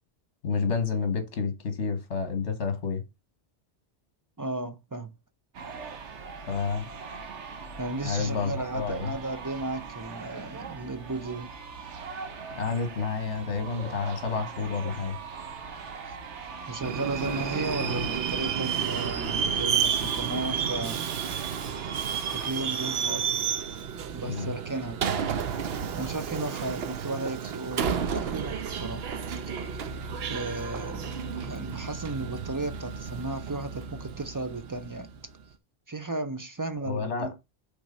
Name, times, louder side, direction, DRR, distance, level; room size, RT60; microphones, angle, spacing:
voice 1, 0.4-3.0 6.5-6.9 8.0-9.1 12.5-15.2 17.8-17.9 24.3-24.5 36.9-37.3, left 5 dB, 75° left, 1.5 m, -29 dB
voice 2, 4.4-5.1 7.8-11.5 16.0-16.2 16.7-21.0 22.3-23.5 24.1-25.0 25.9-29.0 29.5-29.8 30.3-35.1 35.9-37.3, right 2 dB, 25° right, 0.4 m, -35 dB
sound 1, 5.5-22.5, right 5 dB, 85° right, 1.3 m, -41 dB
Subway metro underground, 16.8-35.3, right 7 dB, 65° right, 0.9 m, -31 dB
6.1 x 3.5 x 5.4 m
omnidirectional pair, 1.2 m